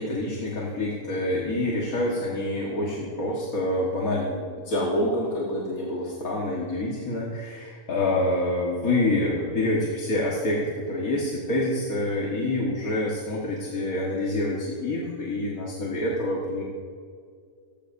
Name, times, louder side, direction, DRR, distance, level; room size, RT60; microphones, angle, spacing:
voice 1, 0.0-16.6, left 1 dB, 75° left, -4 dB, 2.1 m, -27 dB
17.5 x 15.0 x 2.7 m, 2.2 s
omnidirectional pair, 1.5 m